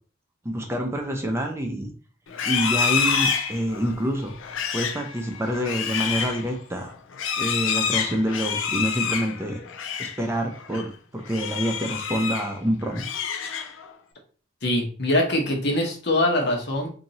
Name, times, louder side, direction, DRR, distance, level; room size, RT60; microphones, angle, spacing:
voice 1, 0.4-1.9 2.4-4.3 4.7-6.9 7.4-9.6 10.0-13.0, equal, 15° right, 2 dB, 0.5 m, -27 dB
Livestock farm animals working animals, 2.3-10.2 10.5-10.8 11.3-12.5 12.8-13.9, left 6 dB, 90° left, 0.5 m, -28 dB
voice 2, 14.6-16.9, left 1 dB, 60° left, 1 dB, 1.1 m, -23 dB
2.9 x 2.7 x 4.0 m, 0.40 s
head